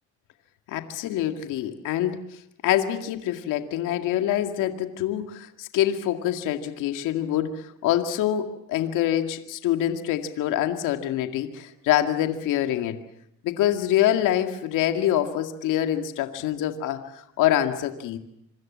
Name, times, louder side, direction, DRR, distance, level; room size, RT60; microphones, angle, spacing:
voice 1, 0.7-13.0 13.4-18.2, left 11 dB, 75° left, 6 dB, 2.1 m, -25 dB
26.5 x 24.5 x 7.4 m, 0.78 s
cardioid pair, 120°, 31 cm